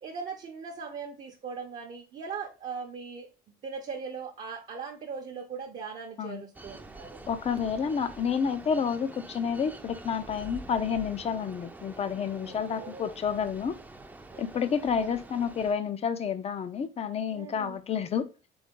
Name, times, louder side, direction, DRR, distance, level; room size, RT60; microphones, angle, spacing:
voice 1, 0.0-3.3 3.6-7.2 12.4-13.1 14.3-14.5 17.3-17.8, right 5 dB, 45° right, 0.7 m, -39 dB
sound 1, 6.5-15.7, right 2 dB, 10° right, 0.6 m, -46 dB
voice 2, 7.3-13.8 14.4-18.3, left 7 dB, 35° left, 0.6 m, -30 dB
3.9 x 3.7 x 3.6 m
cardioid pair, 110°, 17 cm